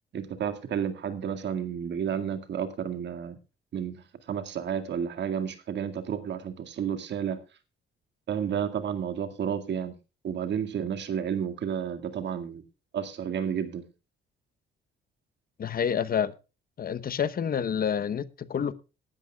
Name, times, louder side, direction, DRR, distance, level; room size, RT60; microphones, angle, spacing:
voice 1, 0.1-3.4 3.7-7.4 8.3-9.9 10.2-12.6 12.9-13.9, right 8 dB, 65° right, 2.0 m, -31 dB
voice 2, 15.6-16.3 16.8-18.7, left 7 dB, 50° left, 1.0 m, -28 dB
19.0 x 12.5 x 2.3 m
cardioid pair, 90°, 20 cm